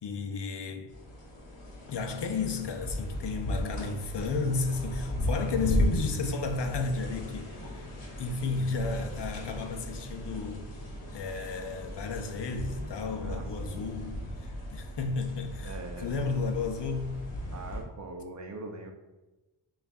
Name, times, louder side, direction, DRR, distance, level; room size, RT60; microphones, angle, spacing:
voice 1, 0.0-0.9 1.9-7.8 8.2-10.6 11.1-17.2, left 4 dB, 60° left, 0.6 m, -33 dB
sound 1, 0.9-17.8, equal, 85° left, 1.0 m, -36 dB
voice 2, 13.1-13.9 15.6-16.2 17.5-18.9, right 2 dB, 35° right, 0.5 m, -42 dB
6.0 x 2.4 x 2.3 m
wide cardioid pair, 80°, 49 cm